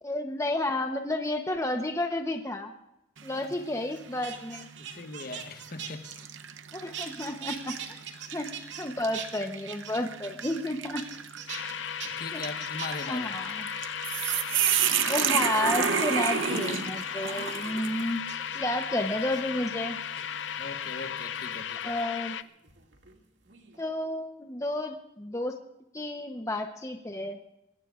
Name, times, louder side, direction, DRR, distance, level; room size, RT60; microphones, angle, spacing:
voice 1, 0.0-2.7 3.2-4.7 6.7-8.0 8.3-8.5 8.8-11.0 12.3-12.4 13.1-13.7 15.1-18.2 18.5-20.0 21.8-22.4 23.8-25.6 25.9-27.4, left 1 dB, 15° left, 5 dB, 0.9 m, -31 dB
sound 1, 3.2-3.7 4.2-4.3 5.3-5.5 6.1-18.1, right 8 dB, 90° right, 0.8 m, -31 dB
sound 2, 3.9-6.7 6.9-8.9 9.1-10.7 11.0-11.6 12.0-12.1 12.4-13.1 13.5-13.9 14.2-14.3 14.7-15.8 16.6-17.0 18.3-18.6 19.2-19.4 20.0-20.6 22.0-23.2 23.4-23.8, right 8 dB, 70° right, 2.2 m, -42 dB
voice 2, 4.8-6.1 12.0-13.3 20.6-21.9, left 3 dB, 50° left, 7 dB, 1.3 m, -40 dB
sound 3, 11.5-22.4, left 8 dB, 75° left, 0.6 m, -36 dB
24.5 x 19.0 x 2.5 m, 0.88 s
head